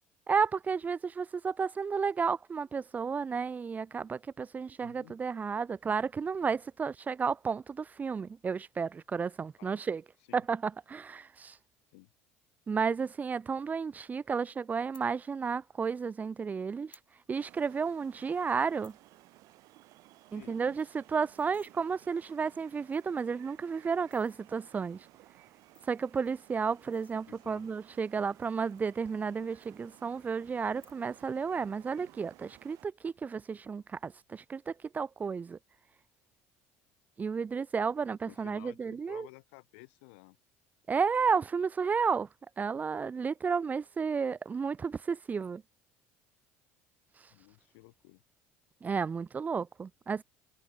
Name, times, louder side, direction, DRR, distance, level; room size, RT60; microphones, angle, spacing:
voice 1, 0.3-10.0 10.3-11.6 12.7-17.0 17.3-18.9 20.3-25.0 25.9-35.6 37.2-39.3 40.9-42.3 42.6-45.6 48.8-50.2, right 5 dB, 25° right, 0.4 m, -32 dB
voice 2, 4.8-5.2 9.6-9.8 10.3-10.4 11.9-12.1 20.3-20.8 27.3-27.7 38.2-40.4 47.3-48.2, left 29 dB, 80° left, 1.0 m, -54 dB
sound 1, 14.8-15.1 16.0-16.1 16.7-17.1 17.5-17.6 17.8-18.0 18.5-19.0 19.4-19.5 19.8-19.9 20.2-20.3 20.6-21.7 22.4-22.5 22.8-23.4 23.9-24.4 25.4-27.6 28.3-29.3 29.6-30.2 30.7-31.3 31.6-32.0, left 3 dB, 15° left, 6.2 m, -62 dB
sound 2, 17.3-32.9, right 18 dB, 65° right, 5.0 m, -59 dB
supercardioid pair, 80°, 6 cm